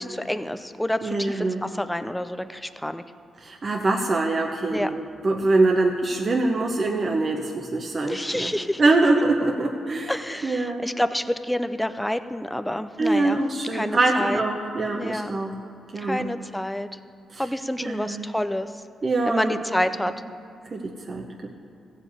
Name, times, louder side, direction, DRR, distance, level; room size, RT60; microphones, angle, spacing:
voice 1, 0.0-3.0 4.7-4.9 8.1-8.8 10.1-13.4 13.7-14.4 14.9-15.4 16.0-16.9 17.4-18.7 19.2-20.1, left 1 dB, 5° left, 10 dB, 0.4 m, -28 dB
voice 2, 1.0-1.6 3.4-8.5 8.8-10.1 10.4-10.8 13.0-15.6 15.9-16.3 17.3-17.4 17.8-18.3 19.0-19.5 20.7-21.5, right 2 dB, 40° right, 1 dB, 0.9 m, -24 dB
14.5 x 5.0 x 8.4 m, 2.4 s
cardioid pair, 80°, 0 cm